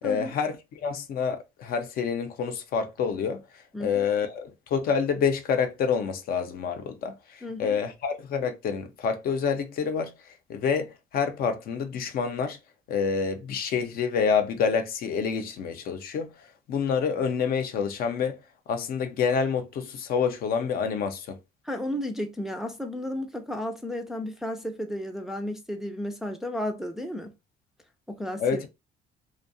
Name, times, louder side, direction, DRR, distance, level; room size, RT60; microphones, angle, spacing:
voice 1, 0.0-3.4 3.8-12.6 12.9-16.3 16.7-18.4 18.7-21.4 28.4-28.7, left 6 dB, 60° left, 0.5 m, -27 dB
voice 2, 7.4-7.8 21.6-27.3 28.1-28.6, left 1 dB, ahead, 0.3 m, -33 dB
2.6 x 2.2 x 2.5 m
cardioid pair, 110°, 17 cm